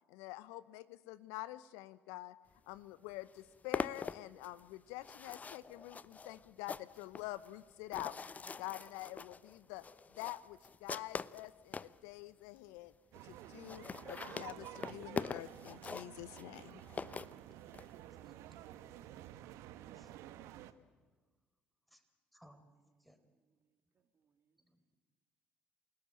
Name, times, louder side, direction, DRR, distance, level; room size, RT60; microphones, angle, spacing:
voice 1, 0.1-2.3 2.7-8.2 8.6-9.8 10.1-12.9 13.2-16.8, left 17 dB, 70° left, 17 dB, 0.8 m, -47 dB
sound 1, 2.8-2.9 3.1-12.0 12.6-12.7 12.9-13.0 13.2-13.3 13.5-17.9, left 5 dB, 30° left, 0.8 m, -44 dB
sound 2, 13.1-20.7, right 12 dB, 65° right, 1.2 m, -51 dB
voice 2, 19.6-20.8 21.9-22.0 22.3-22.6 23.0-23.2 24.6-25.0, equal, ahead, 8 dB, 4.2 m, -67 dB
voice 3, 22.4-24.6, right 6 dB, 40° right, 7 dB, 2.9 m, -81 dB
28.5 x 18.5 x 8.9 m, 1.4 s
hypercardioid pair, 55°, 5 cm